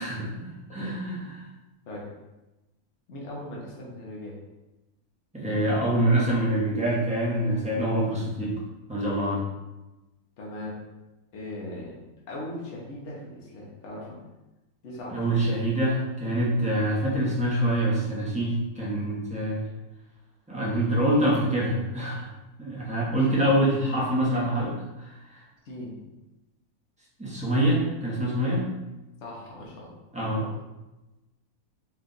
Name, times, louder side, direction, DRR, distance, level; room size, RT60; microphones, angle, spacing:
voice 1, 0.0-1.5 5.3-8.6 8.9-9.4 15.1-19.6 20.5-22.3 22.6-25.4 27.2-28.7 30.1-30.4, right 1 dB, 5° right, -6 dB, 0.7 m, -25 dB
voice 2, 3.1-4.4 10.4-10.7 11.3-12.0 12.3-14.2 14.8-15.2 19.6-19.7 25.6-26.0 29.2-29.9 30.4-30.5, left 1 dB, 55° left, -3 dB, 1.2 m, -39 dB
4.5 x 2.4 x 3.8 m, 1.0 s
omnidirectional pair, 1.6 m